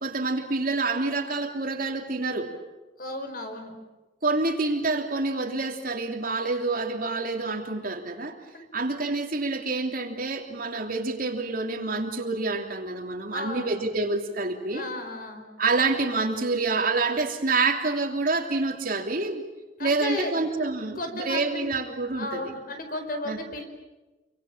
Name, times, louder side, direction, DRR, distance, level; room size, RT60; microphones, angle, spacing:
voice 1, 0.0-2.5 4.2-8.4 8.7-14.9 15.6-19.4 19.8-22.5 23.2-23.4, right 3 dB, 50° right, 4 dB, 3.0 m, -27 dB
voice 2, 3.0-3.7 8.5-8.7 13.3-13.8 14.7-15.4 19.8-20.3 20.8-21.7 22.1-23.7, left 1 dB, 50° left, 6 dB, 4.9 m, -34 dB
28.5 x 24.5 x 7.5 m, 1.1 s
head